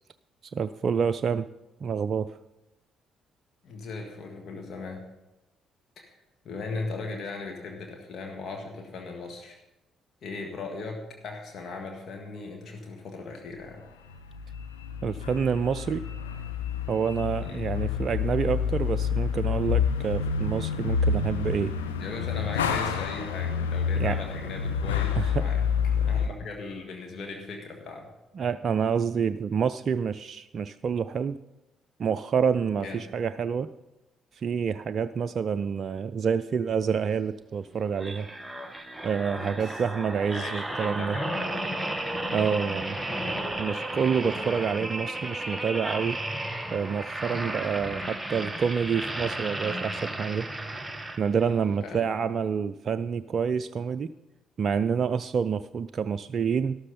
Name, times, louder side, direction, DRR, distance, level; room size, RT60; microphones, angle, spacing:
voice 1, 0.5-1.5 1.8-2.3 15.0-16.0 16.9-21.7 24.0-24.2 25.1-25.4 28.4-31.4 32.0-33.7 34.3-38.3 39.0-41.2 42.3-43.0 43.6-46.2 46.7-50.5 51.2-54.1 54.6-56.8, right 6 dB, 45° right, 13 dB, 0.3 m, -28 dB
voice 2, 3.6-5.0 6.0-9.6 10.2-13.8 17.4-17.8 22.0-25.6 26.0-28.1 32.8-33.0 39.3-39.8 40.1-41.7 42.1-42.4 47.3-47.5 51.8-52.1, left 3 dB, 45° left, 2 dB, 1.8 m, -38 dB
sound 1, 14.1-26.3, left 6 dB, 75° left, 0.8 m, -28 dB
sound 2, 38.0-51.5 52.1-52.3, right 1 dB, 10° right, 1.2 m, -33 dB
12.5 x 12.5 x 4.0 m, 0.99 s
figure-of-eight pair, 45°, 0 cm